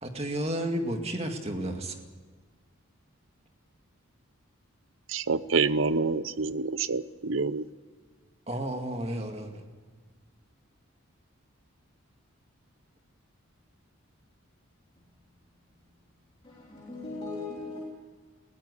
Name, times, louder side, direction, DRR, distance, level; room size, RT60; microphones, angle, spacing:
voice 1, 0.0-1.9 8.5-9.6, right 1 dB, 30° right, 4 dB, 2.2 m, -32 dB
voice 2, 5.1-7.6, right 4 dB, 65° right, 15 dB, 0.8 m, -27 dB
voice 3, 16.4-17.8, left 3 dB, 25° left, -5 dB, 3.5 m, -38 dB
20.5 x 17.0 x 8.4 m, 1.5 s
head